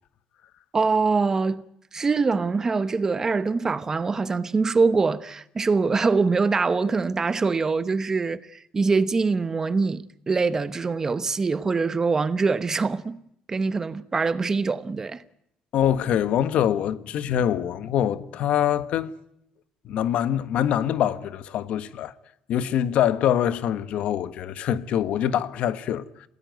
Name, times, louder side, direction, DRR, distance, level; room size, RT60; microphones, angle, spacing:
voice 1, 0.7-1.6 1.9-13.2 13.5-15.2, right 4 dB, 20° right, 1.0 m, -24 dB
voice 2, 15.7-19.1 19.8-22.1 22.5-26.0, left 10 dB, 60° left, 1.4 m, -24 dB
28.0 x 18.0 x 9.3 m
cardioid pair, 140°, 2 cm